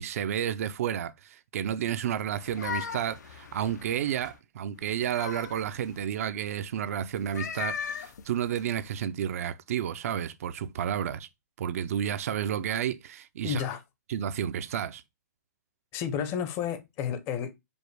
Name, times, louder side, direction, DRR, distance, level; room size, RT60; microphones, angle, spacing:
voice 1, 0.0-11.3 11.6-13.6 14.1-15.0, right 9 dB, 55° right, 0.4 m, -31 dB
sound 1, 2.3-4.4 4.8-6.0 7.2-9.0, left 8 dB, 80° left, 0.6 m, -39 dB
voice 2, 13.4-13.8 15.9-17.5, left 8 dB, 25° left, 0.6 m, -31 dB
5.1 x 2.0 x 4.6 m
hypercardioid pair, 150°, 9 cm